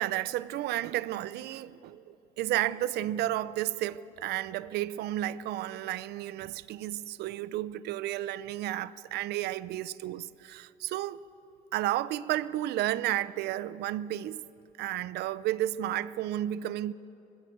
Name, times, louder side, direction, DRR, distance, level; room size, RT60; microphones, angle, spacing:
voice 1, 0.0-11.2 11.7-14.4 14.8-16.9, right 14 dB, 75° right, 0.6 m, -32 dB
20.5 x 16.0 x 8.6 m
cardioid pair, 110°, 17 cm